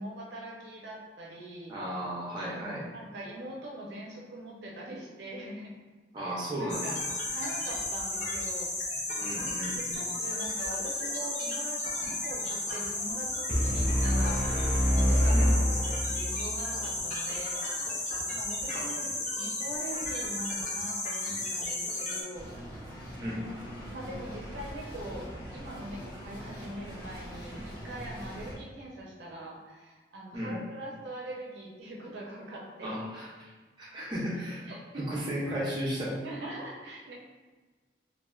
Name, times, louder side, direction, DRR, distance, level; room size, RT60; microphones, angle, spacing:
voice 1, 0.0-1.7 2.4-5.7 6.2-6.3 6.6-7.0 7.3-8.7 9.9-17.6 18.3-19.1 19.4-22.5 23.9-33.0 33.9-34.0 34.7-35.1 36.2-37.1, right 1 dB, 75° right, -2 dB, 0.5 m, -42 dB
voice 2, 1.7-2.9 6.1-6.9 9.1-10.0 15.3-15.5 18.7-18.9 23.2-23.4 30.3-30.6 32.8-33.3 33.8-34.7 35.0-36.1, equal, 25° right, -7 dB, 0.6 m, -34 dB
sound 1, 6.7-22.2, left 2 dB, 40° left, 0.5 m, -33 dB
sound 2, 13.5-16.5, equal, 10° left, 1.0 m, -26 dB
sound 3, 22.3-28.5, equal, 55° left, 0.9 m, -42 dB
3.1 x 2.4 x 2.3 m, 1.3 s
head